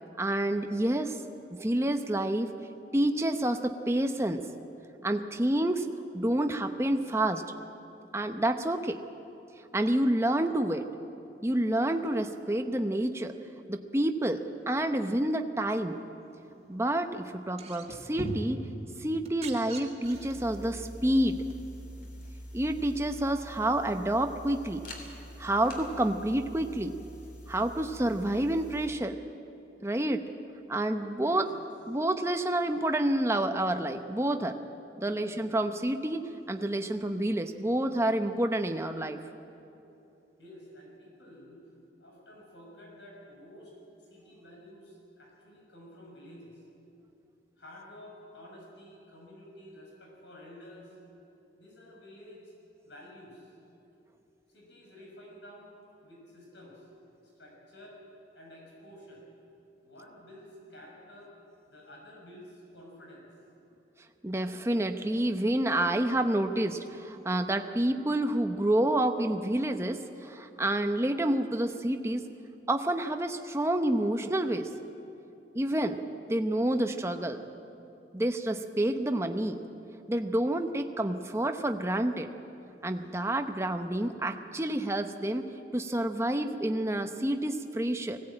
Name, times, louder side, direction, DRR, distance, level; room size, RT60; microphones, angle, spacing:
voice 1, 0.2-1.2 1.5-2.5 2.9-4.5 5.0-5.9 6.1-7.4 8.1-9.0 9.7-10.9 11.4-13.3 13.7-16.0 16.7-18.6 19.0-21.4 22.5-24.8 25.4-27.0 27.5-29.2 29.8-30.2 30.7-31.5 31.9-34.6 35.0-36.2 36.5-39.2 64.2-72.3 72.7-74.7 75.5-76.0 76.3-77.4 78.1-79.6 80.1-82.3 82.8-88.2, right 1 dB, 15° right, 6 dB, 0.8 m, -28 dB
sound 1, 17.4-18.6 19.1-20.4 21.5-21.6, right 1 dB, 35° right, 1.9 m, -39 dB
sound 2, 20.0-28.9, equal, 50° left, 3.2 m, -46 dB
voice 2, 40.4-41.6 42.0-46.6 47.6-51.0 51.6-52.5 52.8-53.5 54.5-55.7 56.0-56.9 57.2-58.0 58.3-59.2 59.8-61.3 61.7-63.3, left 1 dB, 85° left, -2 dB, 6.0 m, -51 dB
20.5 x 17.0 x 8.8 m, 2.9 s
head